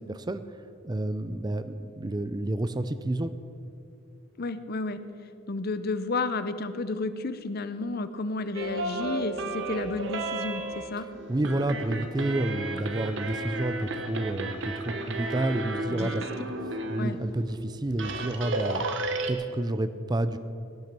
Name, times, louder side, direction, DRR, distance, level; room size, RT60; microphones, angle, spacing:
voice 1, 0.8-3.3 11.3-16.2 16.9-18.8 19.3-20.4, right 1 dB, 20° right, 12 dB, 0.5 m, -29 dB
voice 2, 4.4-5.0 5.5-11.1 15.9-16.1 17.0-17.2, left 3 dB, 50° left, 12 dB, 0.7 m, -31 dB
sound 1, 8.5-17.1 17.5-17.6 17.9-19.3, right 2 dB, 65° right, 1.2 m, -33 dB
17.5 x 9.2 x 6.0 m, 2.5 s
head